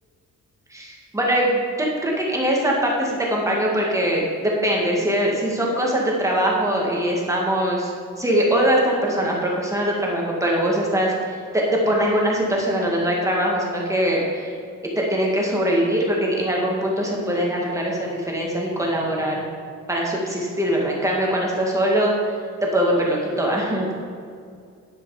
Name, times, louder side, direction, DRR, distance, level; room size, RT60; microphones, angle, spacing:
voice 1, 0.7-7.9 8.2-14.5 15.0-19.5 19.9-22.1 22.6-23.9, equal, 10° right, -2 dB, 2.0 m, -22 dB
10.5 x 10.0 x 4.9 m, 2.2 s
wide cardioid pair, 180°, 32 cm